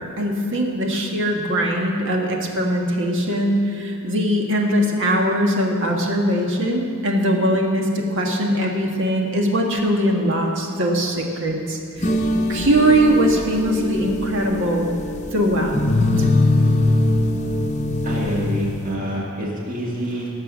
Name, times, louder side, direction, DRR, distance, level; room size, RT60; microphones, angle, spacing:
voice 1, 0.2-12.1 12.5-14.9 15.3-15.8 16.2-16.3, equal, 55° right, 1 dB, 1.6 m, -21 dB
sound 1, 12.0-18.9, left 2 dB, 30° left, 0.9 m, -22 dB
voice 2, 16.6-17.0 18.0-20.3, right 1 dB, 35° right, -3 dB, 2.3 m, -27 dB
18.0 x 7.1 x 6.2 m, 2.3 s
head